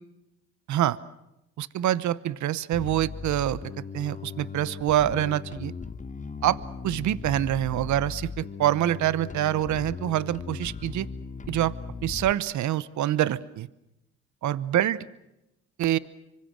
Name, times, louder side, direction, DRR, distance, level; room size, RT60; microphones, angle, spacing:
voice 1, 1.6-3.6 3.9-5.7 6.4-6.6 6.8-11.1 11.5-11.7 12.0-13.7 14.4-15.0 15.8-16.0, right 12 dB, 70° right, 18 dB, 0.9 m, -25 dB
Bass guitar, 2.7-12.3, left 5 dB, 25° left, 1.2 m, -38 dB
26.0 x 24.5 x 6.4 m, 0.87 s
cardioid pair, 90°, 30 cm